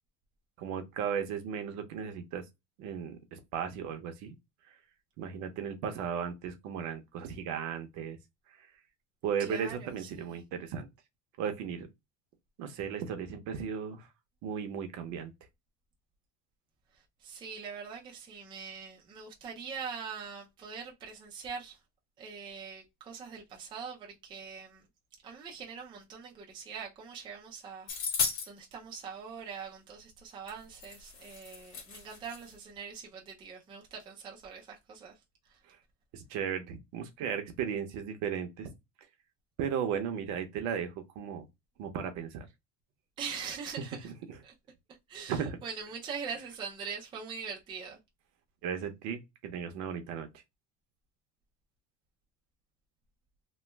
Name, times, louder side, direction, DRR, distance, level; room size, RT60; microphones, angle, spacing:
voice 1, 0.6-2.4 2.8-4.3 5.2-8.2 9.2-10.9 11.4-11.9 12.6-14.1 14.4-15.3 36.1-38.7 39.6-41.4 41.8-42.4 44.3-44.4 45.3-45.6 48.6-50.3, right 7 dB, 55° right, 0.7 m, -35 dB
voice 2, 9.4-10.4 17.2-21.8 22.2-24.8 25.2-35.1 43.2-44.1 44.4-44.5 45.1-48.0, right 6 dB, 15° right, 0.4 m, -43 dB
sound 1, 27.9-28.5 30.5-30.6 30.8-32.5, left 5 dB, 75° left, 1.5 m, -35 dB
3.0 x 2.1 x 3.3 m
cardioid pair, 170°, 35 cm